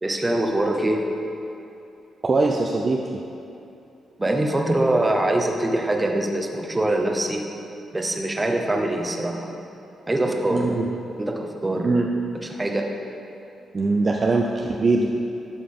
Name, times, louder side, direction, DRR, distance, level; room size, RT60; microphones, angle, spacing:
voice 1, 0.0-1.1 4.2-7.4 7.9-9.6 10.1-10.7 11.2-11.9 12.5-12.9, right 1 dB, 20° right, 2 dB, 0.8 m, -23 dB
voice 2, 2.2-3.0 10.5-10.9 11.8-12.1 13.7-15.1, right 3 dB, 35° right, 1 dB, 0.5 m, -21 dB
11.0 x 5.7 x 3.7 m, 2.9 s
cardioid pair, 90°, 0 cm